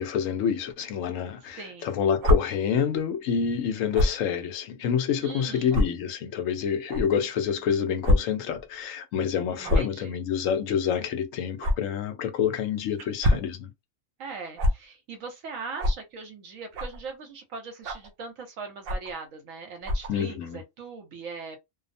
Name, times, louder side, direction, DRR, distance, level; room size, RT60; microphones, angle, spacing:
voice 1, 0.0-13.7 20.1-20.6, left 8 dB, 75° left, 1.0 m, -27 dB
voice 2, 1.6-1.9 5.2-5.9 9.6-10.2 14.2-21.6, right 4 dB, 75° right, 1.2 m, -40 dB
sound 1, 2.2-2.4 3.9-4.2 4.9-5.0 5.7-5.8 6.9-7.0 8.0-8.2 8.5-8.6 9.6-9.9 11.6-11.7 13.0-13.5 14.6-14.7 15.8-16.0 16.7-17.0 17.8-18.1 18.8-19.1 19.8-20.1, left 1 dB, 55° right, 0.7 m, -23 dB
2.7 x 2.0 x 2.6 m
omnidirectional pair, 1.4 m